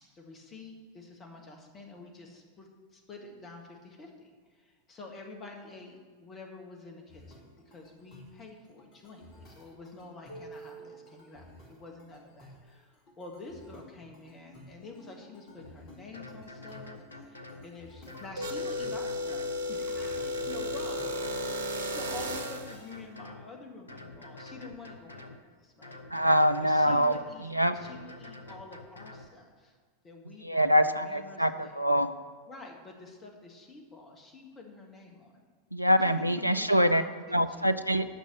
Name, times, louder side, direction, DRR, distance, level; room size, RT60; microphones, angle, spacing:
voice 1, 0.1-26.0 26.6-29.7 30.0-31.8 32.5-35.4 35.8-37.7, left 3 dB, 25° left, 1 dB, 1.7 m, -48 dB
sound 1, 7.1-23.2, equal, 40° left, 2.2 m, -53 dB
sound 2, 15.6-15.7 16.1-17.7 18.1-19.6 20.0-21.5 21.9-23.5 23.9-25.4 25.8-27.3 27.7-29.3, left 2 dB, 80° left, 0.9 m, -47 dB
sound 3, 18.4-22.8, left 1 dB, 65° right, 0.9 m, -33 dB
voice 2, 26.1-27.2 27.5-27.7 30.4-32.1 35.7-37.0 37.3-38.1, equal, 90° right, 10 dB, 0.5 m, -24 dB
9.2 x 6.4 x 8.3 m, 1.5 s
figure-of-eight pair, 90°, 0 cm